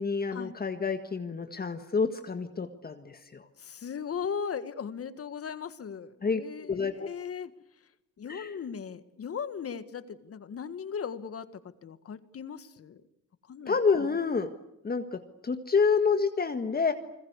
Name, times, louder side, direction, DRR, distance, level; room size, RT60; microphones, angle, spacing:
voice 1, 0.0-3.5 6.2-6.4 6.7-7.1 8.3-8.5 13.7-14.5 14.8-16.9, left 5 dB, 30° left, 7 dB, 1.8 m, -28 dB
voice 2, 3.6-7.5 8.2-11.5 11.8-13.0 13.5-13.7, left 7 dB, 50° left, 12 dB, 1.7 m, -38 dB
29.5 x 21.0 x 8.2 m, 0.82 s
cardioid pair, 90°, 30 cm